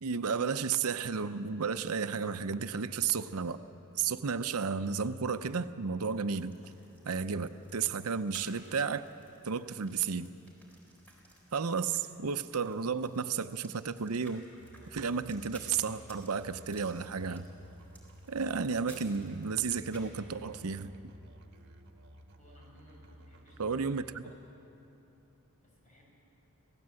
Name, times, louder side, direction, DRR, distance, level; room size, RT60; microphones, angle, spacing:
voice 1, 0.0-3.6 4.0-6.5 7.1-9.0 9.4-10.3 11.5-14.4 14.9-17.5 18.3-20.9 23.6-24.2, right 5 dB, 80° right, 11 dB, 0.7 m, -32 dB
sound 1, 6.3-20.2, right 1 dB, 5° left, 3.9 m, -58 dB
Musical instrument, 14.6-24.2, right 1 dB, 50° right, 1.5 m, -55 dB
voice 2, 22.4-24.4 25.6-26.1, left 1 dB, 35° left, -3 dB, 6.5 m, -60 dB
26.0 x 17.0 x 7.7 m, 2.9 s
head